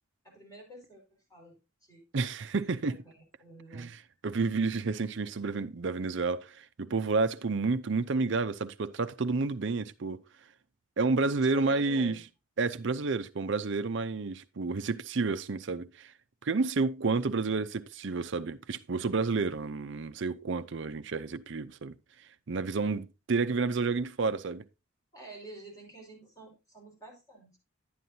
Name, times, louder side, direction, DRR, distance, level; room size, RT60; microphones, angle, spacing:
voice 1, 0.2-1.0 1.3-1.6 1.9-2.0 2.9-3.0 3.4-3.9 11.4-12.2 25.1-27.6, right 1 dB, 15° left, 5.2 m, -48 dB
voice 2, 2.1-3.0 3.7-10.2 11.0-12.2 12.6-16.1 16.4-21.9 22.5-24.6, right 4 dB, 60° right, 0.6 m, -30 dB
11.0 x 9.4 x 2.8 m
head